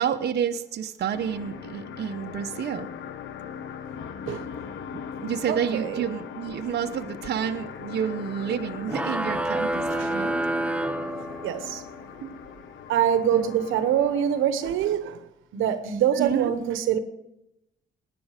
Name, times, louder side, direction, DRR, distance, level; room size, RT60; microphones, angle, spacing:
voice 1, 0.0-2.9 4.9-10.4 12.2-12.4 13.3-13.5 16.1-16.5, right 8 dB, 55° right, 0.9 m, -29 dB
sound 1, 1.1-14.5, left 7 dB, 65° left, 1.1 m, -39 dB
voice 2, 5.5-6.0 9.9-10.1 10.5-10.7 11.4-11.8 12.9-15.2 15.5-17.0, right 9 dB, 85° right, 1.0 m, -25 dB
sound 2, 8.9-11.8, right 1 dB, 5° right, 0.6 m, -28 dB
18.5 x 10.0 x 5.0 m
cardioid pair, 90°, 20 cm